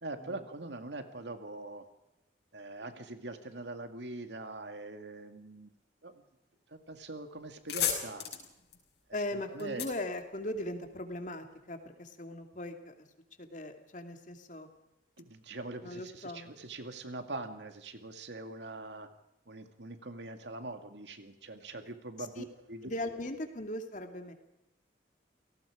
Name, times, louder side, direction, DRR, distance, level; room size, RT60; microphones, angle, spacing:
voice 1, 0.0-1.8 2.5-5.7 6.0-6.1 6.7-8.2 9.3-9.9 15.2-19.1 19.5-22.9, right 2 dB, 90° right, 7 dB, 2.2 m, -43 dB
sound 1, 6.9-7.1 7.4-11.0, left 9 dB, 75° left, 5.5 m, -36 dB
voice 2, 9.1-13.1 13.4-14.7 15.8-16.5 22.2-22.4 22.8-24.3, left 1 dB, 45° left, 6 dB, 2.6 m, -39 dB
29.0 x 18.0 x 5.1 m, 0.90 s
head